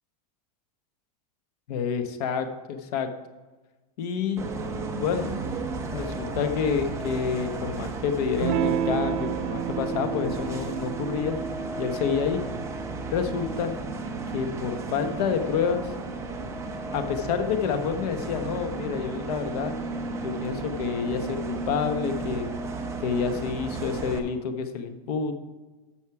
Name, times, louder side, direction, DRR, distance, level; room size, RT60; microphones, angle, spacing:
voice 1, 1.7-3.1 4.0-4.5 4.9-5.4 5.9-11.4 11.8-12.4 13.1-13.7 14.3-15.9 16.9-19.7 20.2-22.5 23.0-25.4, left 6 dB, 70° left, 7 dB, 1.3 m, -28 dB
Bus, 4.4-24.2, right 3 dB, 15° right, 1.0 m, -34 dB
Electric guitar / Strum, 8.4-13.5, right 10 dB, 50° right, 0.5 m, -31 dB
13.0 x 6.4 x 4.8 m, 1.2 s
supercardioid pair, 150°, 20 cm